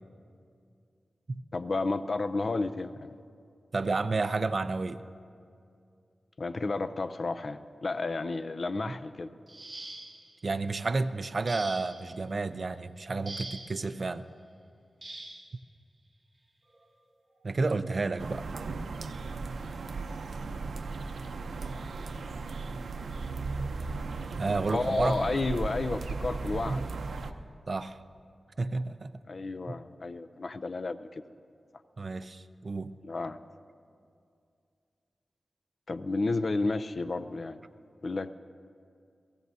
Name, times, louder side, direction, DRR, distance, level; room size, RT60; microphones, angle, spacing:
voice 1, 1.5-3.1 6.4-9.3 24.7-26.9 29.3-31.2 33.0-33.4 35.9-37.6 38.0-38.4, left 3 dB, 50° left, 11 dB, 0.5 m, -32 dB
voice 2, 3.7-5.0 8.8-8.9 10.4-14.2 17.4-18.5 24.4-25.2 27.7-28.0 28.6-29.1 29.7-29.8 32.0-32.9, right 3 dB, 45° right, 12 dB, 0.5 m, -31 dB
sound 1, 9.5-10.4 11.5-12.1 13.2-13.8 15.0-15.5 16.7-16.8 17.3-17.5, right 2 dB, 25° right, 1.7 m, -43 dB
sound 2, 18.2-27.3, right 3 dB, 85° right, 0.6 m, -36 dB
29.5 x 17.5 x 2.7 m, 2.3 s
wide cardioid pair, 130°, 0 cm